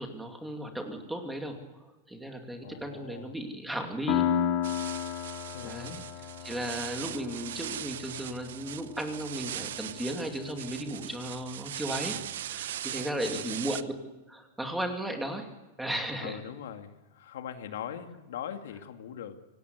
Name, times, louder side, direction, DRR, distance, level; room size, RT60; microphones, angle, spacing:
voice 1, 0.0-4.2 5.6-6.0 6.4-12.2 12.4-13.9 14.3-15.5 15.8-16.4, right 1 dB, 5° right, 3 dB, 2.5 m, -35 dB
voice 2, 2.6-3.3 5.5-6.0 12.9-13.6 16.2-19.4, left 9 dB, 75° left, 6 dB, 2.3 m, -41 dB
Piano, 4.1-11.5, left 10 dB, 35° left, 2.1 m, -35 dB
sound 1, 4.6-13.8, right 11 dB, 75° right, 0.9 m, -40 dB
25.5 x 18.5 x 8.2 m, 1.1 s
supercardioid pair, 170°, 0 cm